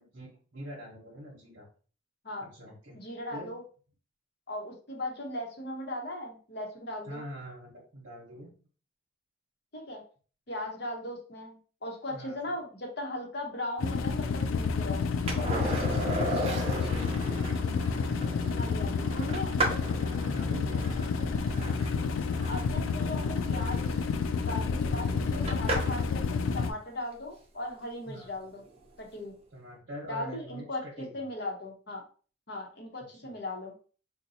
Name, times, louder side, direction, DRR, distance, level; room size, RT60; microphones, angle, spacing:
voice 1, 0.0-1.7 2.4-3.0 3.3-3.6 7.0-8.5 12.1-12.6 16.3-17.4 18.2-18.6 20.2-21.3 28.0-28.3 29.5-31.2 33.1-33.3, equal, 55° right, -4 dB, 0.9 m, -44 dB
voice 2, 2.9-3.6 4.5-7.2 9.7-10.0 10.5-15.0 15.3-15.5 18.6-19.5 22.5-24.0 24.4-28.6 29.0-29.3 30.1-32.0 32.5-33.7, left 1 dB, 55° left, 1 dB, 0.9 m, -38 dB
sound 1, 13.8-26.7, left 5 dB, 85° left, 0.4 m, -30 dB
Skateboard, 15.3-26.1 28.7-28.8, right 1 dB, 30° right, 0.7 m, -36 dB
4.0 x 2.2 x 2.7 m, 0.40 s
head